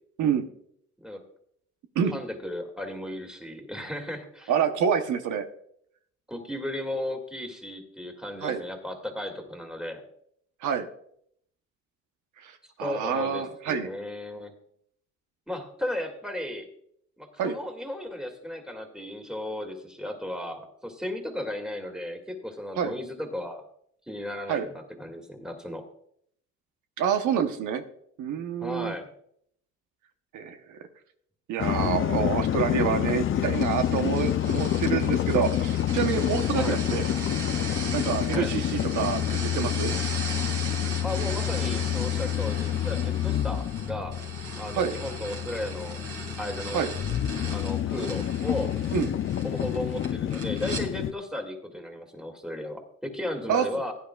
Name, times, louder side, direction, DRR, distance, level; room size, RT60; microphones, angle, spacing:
voice 1, 2.1-4.5 6.3-10.0 12.8-14.5 15.5-16.7 17.2-23.6 24.1-25.8 28.6-29.1 36.5-36.8 38.3-38.5 41.0-44.2 44.6-46.0 46.4-46.8 47.4-48.8 49.4-53.9, left 1 dB, ahead, 4 dB, 2.3 m, -35 dB
voice 2, 4.5-5.4 8.4-8.6 10.6-10.9 12.4-12.5 12.8-13.9 17.4-17.6 22.8-22.9 24.5-24.7 27.0-27.8 28.2-28.9 30.3-30.8 31.5-37.1 37.9-39.9 44.7-44.9 46.7-46.9 48.9-49.1 53.5-53.7, right 7 dB, 80° right, 7 dB, 1.0 m, -27 dB
sound 1, 31.6-51.1, left 11 dB, 45° left, 0.5 m, -28 dB
sound 2, 33.4-50.8, right 4 dB, 55° right, 3.8 m, -38 dB
16.0 x 10.5 x 2.3 m, 0.68 s
cardioid pair, 90°, 30 cm